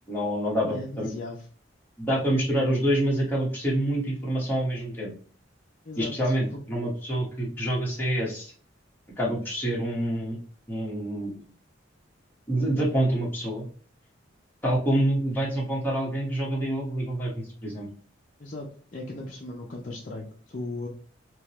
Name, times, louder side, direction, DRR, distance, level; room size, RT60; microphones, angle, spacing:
voice 1, 0.1-1.1 2.0-5.1 6.0-8.5 9.2-10.4 10.7-11.3 12.5-13.6 14.6-17.9, right 1 dB, 10° left, -5 dB, 1.3 m, -27 dB
voice 2, 0.6-1.5 5.8-6.1 6.5-6.6 18.4-20.9, left 2 dB, 40° left, -3 dB, 0.5 m, -37 dB
3.6 x 2.9 x 3.0 m, 0.43 s
head